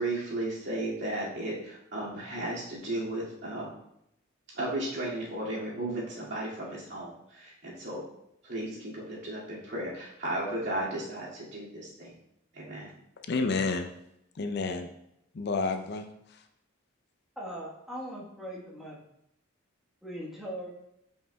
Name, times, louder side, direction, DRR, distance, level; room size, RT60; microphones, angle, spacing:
voice 1, 0.0-3.7 4.5-8.1 8.4-12.1 12.5-12.9, right 1 dB, 55° right, -6 dB, 2.2 m, -35 dB
voice 2, 13.2-13.9 14.4-14.9 15.3-16.4, left 3 dB, 50° left, 6 dB, 0.5 m, -30 dB
voice 3, 17.4-19.0 20.0-20.7, equal, ahead, -6 dB, 1.2 m, -39 dB
7.9 x 5.4 x 2.2 m, 0.78 s
head